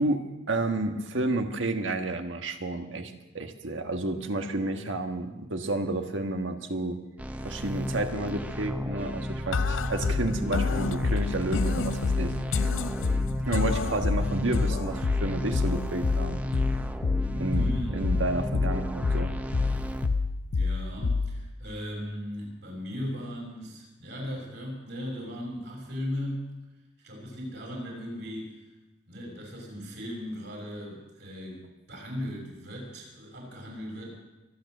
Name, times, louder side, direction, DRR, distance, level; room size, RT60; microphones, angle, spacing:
voice 1, 0.0-7.0 7.4-12.7 13.4-16.4 17.3-19.3, right 2 dB, 80° right, 6 dB, 1.5 m, -31 dB
sound 1, 7.2-20.1, equal, 10° right, 0.7 m, -34 dB
sound 2, 9.5-21.5, left 4 dB, 90° left, 0.6 m, -28 dB
voice 2, 17.5-18.1 20.5-26.5 27.0-28.6 29.1-34.1, equal, 60° right, -1 dB, 6.4 m, -37 dB
23.5 x 9.0 x 6.7 m, 1.1 s
head